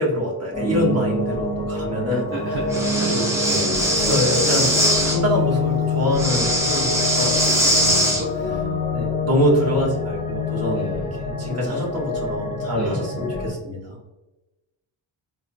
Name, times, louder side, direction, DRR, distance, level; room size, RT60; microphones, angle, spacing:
voice 1, 0.0-2.3 3.1-3.3 4.0-8.2 8.9-11.0 11.4-14.0, equal, 35° right, -3 dB, 0.9 m, -25 dB
sound 1, 0.5-13.5, left 3 dB, 25° left, 0.7 m, -26 dB
voice 2, 2.1-3.2 3.4-4.0 7.8-9.0 10.7-11.1 12.8-13.1, right 1 dB, 55° right, -2 dB, 0.5 m, -32 dB
Breathing, 2.7-5.2 6.1-8.2, right 1 dB, 5° right, 0.4 m, -21 dB
3.0 x 2.0 x 2.4 m, 1.0 s
wide cardioid pair, 145°, 45 cm